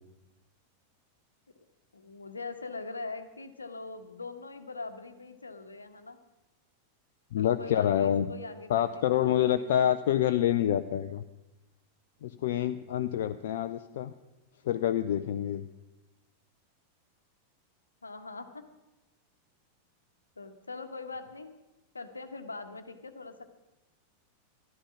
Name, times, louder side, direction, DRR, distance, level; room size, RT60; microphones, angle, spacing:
voice 1, 1.9-6.2 7.4-9.7 18.0-18.7 20.4-21.6 21.9-23.5, left 3 dB, 80° left, 8 dB, 1.1 m, -42 dB
voice 2, 7.3-8.3 8.7-11.2 12.2-14.1 14.6-15.6, left 11 dB, 55° left, 10 dB, 0.5 m, -27 dB
14.0 x 12.0 x 6.2 m, 1.0 s
figure-of-eight pair, 90°, 0 cm